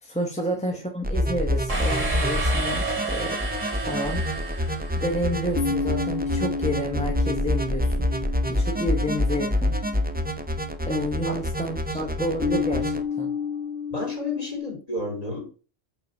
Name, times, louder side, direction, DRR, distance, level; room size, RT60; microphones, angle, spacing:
voice 1, 0.0-3.4 3.8-4.2 5.0-9.8 10.8-13.3, equal, 5° left, 0 dB, 1.2 m, -30 dB
sound 1, 1.0-13.0, left 1 dB, 10° right, 0.4 m, -27 dB
sound 2, 1.7-5.5, right 4 dB, 75° right, 2.7 m, -31 dB
sound 3, 5.6-11.0 12.4-14.6, left 5 dB, 60° left, 0.8 m, -31 dB
voice 2, 13.9-15.5, left 1 dB, 30° left, -1 dB, 3.4 m, -32 dB
8.3 x 4.0 x 5.3 m, 0.35 s
omnidirectional pair, 1.3 m